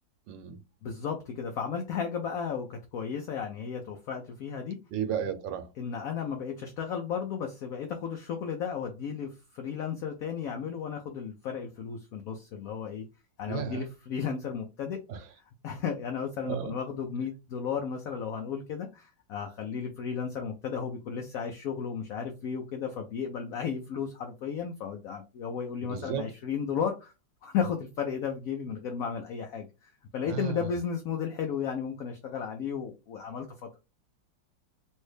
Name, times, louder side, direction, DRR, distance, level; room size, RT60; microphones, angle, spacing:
voice 1, 0.3-0.6 4.9-5.7 13.5-13.9 15.1-15.3 16.4-16.8 25.8-26.3 30.3-30.7, right 8 dB, 85° right, 1.3 m, -34 dB
voice 2, 0.8-4.8 5.8-13.0 13.4-15.2 15.6-27.1 27.4-33.7, left 7 dB, 70° left, 0.8 m, -34 dB
3.2 x 2.7 x 3.2 m
omnidirectional pair, 2.0 m